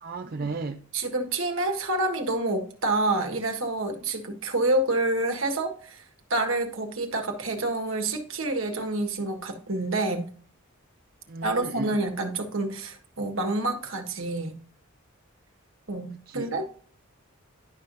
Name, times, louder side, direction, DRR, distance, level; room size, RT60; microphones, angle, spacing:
voice 1, 0.0-0.8 11.3-12.0 16.3-16.5, right 4 dB, 45° right, 0.6 m, -34 dB
voice 2, 0.9-6.0 6.3-10.3 11.4-14.6 15.9-16.7, right 2 dB, 65° right, 1.5 m, -28 dB
11.0 x 5.7 x 2.5 m
head